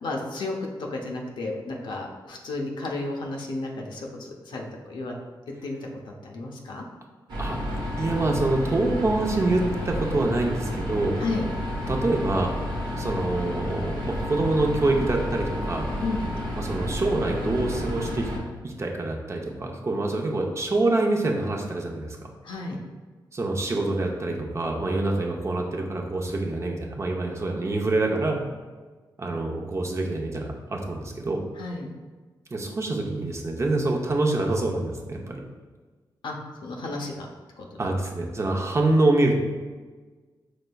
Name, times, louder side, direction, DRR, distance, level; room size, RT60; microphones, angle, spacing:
voice 1, 0.0-5.1 5.6-5.8 6.0-6.8 11.2-11.4 16.0-16.3 22.4-22.8 31.6-31.9 36.2-37.3 37.6-37.8, left 2 dB, 80° left, 0 dB, 0.6 m, -32 dB
sound 1, 7.3-18.4, left 1 dB, 80° right, 1.0 m, -31 dB
voice 2, 8.0-11.2 11.9-12.5 13.0-15.9 16.6-18.3 18.6-22.3 23.3-28.4 29.2-31.4 32.5-35.4 37.8-39.4, right 2 dB, 35° right, 1 dB, 0.6 m, -26 dB
5.1 x 3.2 x 2.3 m, 1.3 s
cardioid pair, 65°, 8 cm